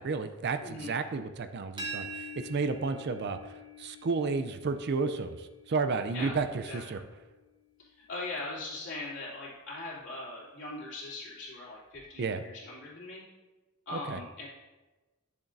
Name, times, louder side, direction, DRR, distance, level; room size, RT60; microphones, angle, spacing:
voice 1, 0.0-2.1 2.4-3.4 3.8-7.0 12.2-12.4 13.9-14.2, right 4 dB, 50° right, 10 dB, 0.5 m, -32 dB
voice 2, 0.6-0.9 6.1-7.0 7.8-13.2 13.9-14.5, left 2 dB, 60° left, -6 dB, 2.9 m, -41 dB
sound 1, 1.8-7.5, right 1 dB, 25° right, 1.2 m, -45 dB
10.5 x 7.1 x 2.6 m, 1.2 s
head